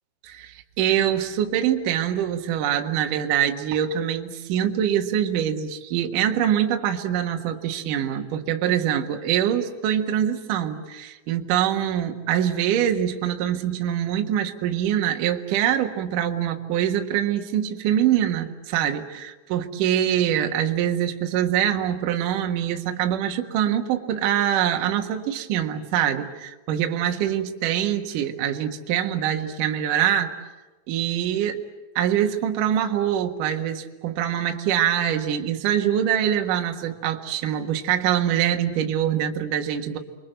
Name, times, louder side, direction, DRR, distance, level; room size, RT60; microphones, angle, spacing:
voice 1, 0.2-30.3 30.9-31.6 32.0-40.0, right 10 dB, 60° right, 4 dB, 2.3 m, -24 dB
30.0 x 23.5 x 7.9 m, 1.2 s
omnidirectional pair, 5.7 m